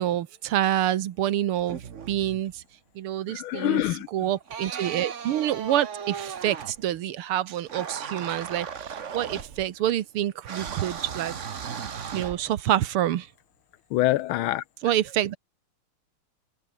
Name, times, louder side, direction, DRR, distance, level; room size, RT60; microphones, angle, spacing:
voice 1, 0.0-1.8 2.1-2.6 3.0-3.8 4.1-11.5 12.1-13.3 14.8-15.4, right 12 dB, 90° right, 2.0 m, -27 dB
sound 1, 1.6-2.6 4.3-7.0 7.7-9.9 10.4-12.8, right 7 dB, 40° right, 1.3 m, -37 dB
voice 2, 3.3-4.1 13.9-14.6, left 15 dB, 80° left, 1.4 m, -25 dB
omnidirectional pair, 2.3 m